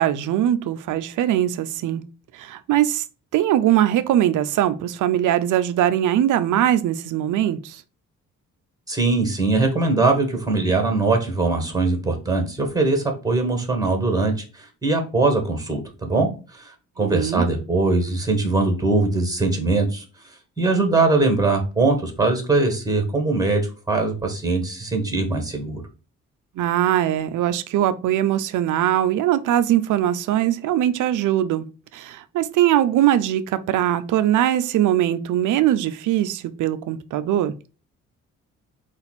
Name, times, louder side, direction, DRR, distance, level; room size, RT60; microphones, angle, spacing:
voice 1, 0.0-2.0 2.3-3.0 3.3-7.8 17.0-17.5 26.6-31.7 31.9-37.5, right 12 dB, 50° right, 12 dB, 0.5 m, -21 dB
voice 2, 8.9-16.7 17.0-20.0 20.6-25.8, right 3 dB, 10° right, 4 dB, 1.6 m, -21 dB
4.0 x 2.5 x 4.2 m, 0.33 s
hypercardioid pair, 40°, 40 cm